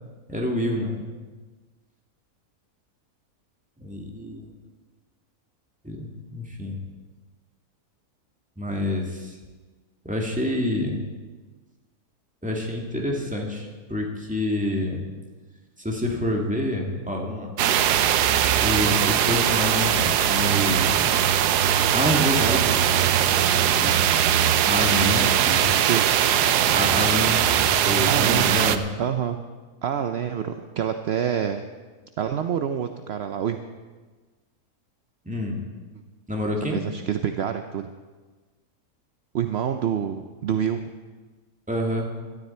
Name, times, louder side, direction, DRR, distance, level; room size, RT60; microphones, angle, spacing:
voice 1, 0.3-1.0 3.8-4.5 5.8-6.8 8.6-9.4 10.0-11.0 12.4-15.1 15.8-17.5 18.6-21.1 21.9-24.0 24.7-25.7 26.7-28.8 35.2-35.6 36.3-36.8 41.7-42.1, left 1 dB, 5° right, 0 dB, 2.0 m, -28 dB
sound 1, 17.6-28.8, right 10 dB, 85° right, 1.2 m, -20 dB
voice 2, 28.1-28.6 29.0-29.4 29.8-31.6 32.2-33.6 36.7-37.9 39.3-40.9, right 8 dB, 60° right, 7 dB, 0.7 m, -27 dB
17.5 x 12.5 x 4.3 m, 1.3 s
omnidirectional pair, 1.7 m